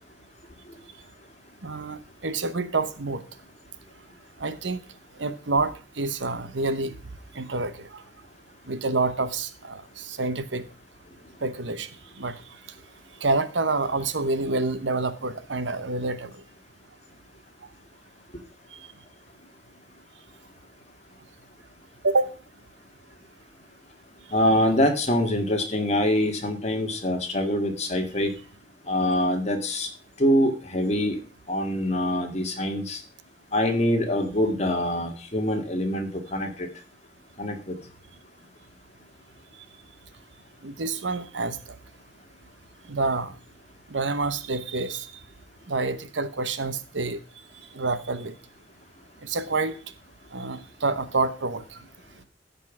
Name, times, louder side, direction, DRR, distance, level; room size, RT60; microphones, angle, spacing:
voice 1, 1.6-3.2 4.4-4.8 5.2-6.9 7.3-8.0 8.7-10.6 11.4-11.9 12.2-12.3 13.2-16.3 22.0-22.3 40.6-41.6 42.9-43.3 43.9-45.1 45.7-47.2 47.7-48.3 49.2-49.8 50.3-51.8, right 3 dB, 85° right, 13 dB, 1.0 m, -27 dB
voice 2, 24.3-28.3 28.9-29.9 30.2-31.2 31.5-33.0 33.5-36.7 37.4-37.8, left 1 dB, 35° left, 4 dB, 2.0 m, -24 dB
13.5 x 5.5 x 6.0 m, 0.36 s
head